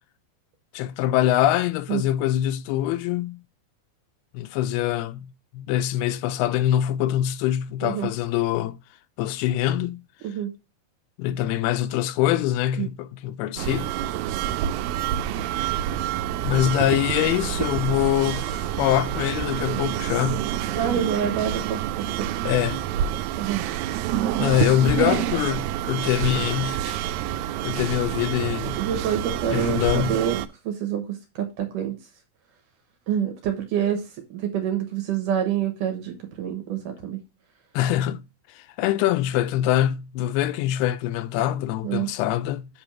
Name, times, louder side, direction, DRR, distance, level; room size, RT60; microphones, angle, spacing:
voice 1, 0.7-3.4 4.3-5.3 5.5-8.8 9.2-10.0 11.2-13.9 16.4-20.5 22.5-22.9 24.4-27.0 27.6-28.8 29.5-30.2 37.7-38.2 38.6-42.7, left 12 dB, 85° left, 2.6 m, -24 dB
sound 1, 13.6-30.5, right 11 dB, 80° right, 2.1 m, -27 dB
voice 2, 20.8-22.3 23.4-23.6 28.8-30.4 30.7-32.0 33.1-34.0 34.3-37.2 41.8-42.1, right 9 dB, 65° right, 2.5 m, -27 dB
8.2 x 3.5 x 5.7 m
omnidirectional pair, 4.5 m